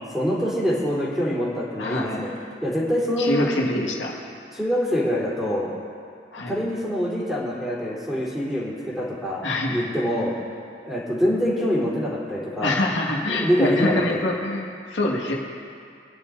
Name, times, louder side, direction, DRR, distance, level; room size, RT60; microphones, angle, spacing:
voice 1, 0.1-2.3 2.6-3.5 4.5-5.7 6.5-10.3 10.8-12.8 13.3-14.2, equal, ahead, -8 dB, 3.6 m, -25 dB
voice 2, 1.8-2.2 3.2-4.1 6.3-6.6 9.4-9.9 12.6-15.3, left 1 dB, 90° left, -2 dB, 1.9 m, -25 dB
24.5 x 10.5 x 2.7 m, 2.3 s
head